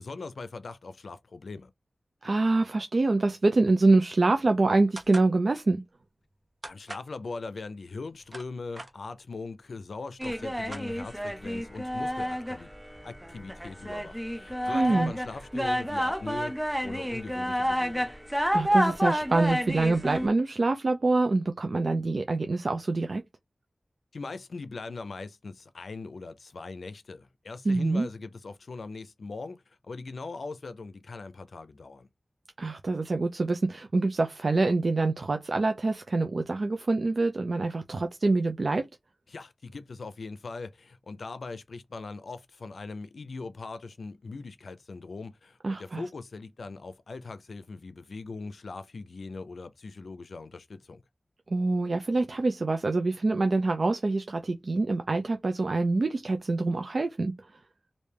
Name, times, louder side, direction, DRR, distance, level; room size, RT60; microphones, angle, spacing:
voice 1, 0.0-1.7 6.6-12.7 13.0-18.1 24.1-32.1 39.3-51.0, left 3 dB, 90° left, 0.5 m, -40 dB
voice 2, 2.2-5.8 14.7-15.1 18.5-23.2 27.7-28.1 32.6-38.9 45.6-46.0 51.5-57.3, right 3 dB, 60° right, 0.4 m, -25 dB
sound 1, 5.0-5.3 6.6-7.1 8.0-8.9 9.8-9.9 10.1-11.3, right 1 dB, 35° right, 1.0 m, -42 dB
sound 2, 10.2-20.3, equal, 5° right, 0.5 m, -30 dB
3.2 x 2.6 x 3.3 m
wide cardioid pair, 90°, 0 cm